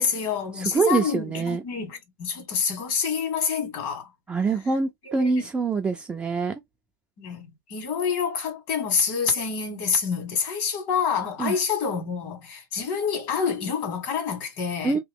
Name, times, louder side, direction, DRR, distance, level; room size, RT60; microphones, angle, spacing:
voice 1, 0.0-4.1 5.1-5.5 7.2-15.0, left 6 dB, 40° left, 1.7 m, -27 dB
voice 2, 0.6-1.6 4.3-6.5 11.4-11.6 14.8-15.0, right 4 dB, 10° right, 0.4 m, -24 dB
3.0 x 2.9 x 3.5 m
hypercardioid pair, 140°, 11 cm